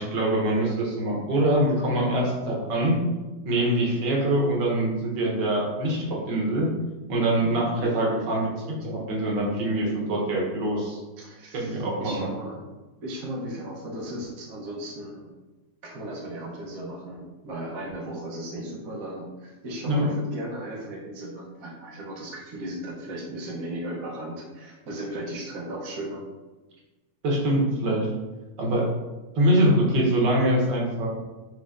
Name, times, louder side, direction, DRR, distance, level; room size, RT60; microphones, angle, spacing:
voice 1, 0.0-3.0 3.4-6.7 7.1-11.0 11.5-12.3 19.8-20.1 27.2-28.1 28.6-28.9 29.3-31.1, right 1 dB, 85° right, -3 dB, 1.6 m, -24 dB
voice 2, 7.8-8.5 11.2-12.7 13.0-15.3 15.8-26.2, right 1 dB, 60° right, -3 dB, 1.3 m, -36 dB
5.3 x 3.1 x 2.5 m, 1.2 s
omnidirectional pair, 1.8 m